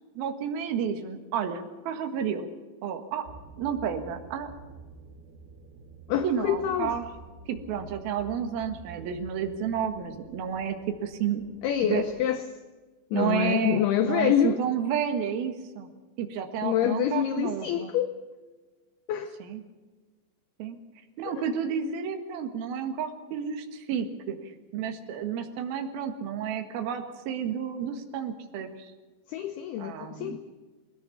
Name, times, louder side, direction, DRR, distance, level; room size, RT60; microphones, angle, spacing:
voice 1, 0.1-2.5 2.8-3.3 3.6-4.5 6.2-7.0 7.5-11.4 11.9-12.0 13.1-15.9 16.2-17.9 19.4-19.6 20.6-20.8 21.2-28.7 29.8-30.4, right 8 dB, 60° right, 3.1 m, -31 dB
sound 1, 3.2-12.2, right 5 dB, 85° right, 4.8 m, -49 dB
voice 2, 6.1-7.0 11.6-12.5 13.1-14.6 16.6-18.2 19.1-19.3 21.3-21.4 29.3-30.4, left 10 dB, 80° left, 2.3 m, -26 dB
21.0 x 17.5 x 7.2 m
omnidirectional pair, 5.4 m